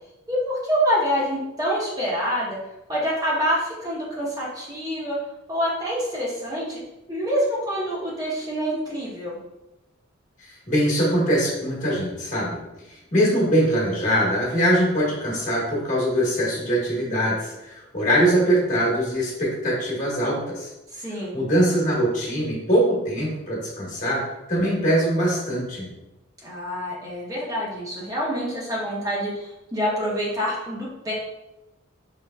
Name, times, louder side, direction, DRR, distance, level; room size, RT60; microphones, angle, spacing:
voice 1, 0.3-2.6 2.9-5.2 5.5-6.8 7.1-9.4 20.9-21.3 26.4-31.1, equal, 20° right, -6 dB, 0.8 m, -26 dB
voice 2, 10.4-12.6 12.9-20.7 21.0-24.2 24.5-25.9, equal, 40° left, -5 dB, 1.3 m, -22 dB
4.8 x 3.4 x 2.2 m, 0.95 s
head